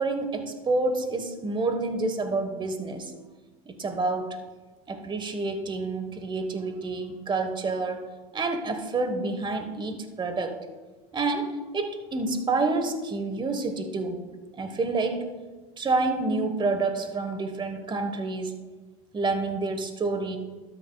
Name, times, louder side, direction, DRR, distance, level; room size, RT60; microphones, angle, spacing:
voice 1, 0.0-3.1 3.7-4.4 4.9-8.0 8.3-10.6 11.1-14.2 14.6-15.3 15.8-18.6 19.1-20.4, right 3 dB, 25° right, 7 dB, 1.3 m, -28 dB
12.5 x 9.4 x 2.3 m, 1.3 s
hypercardioid pair, 90°, 19 cm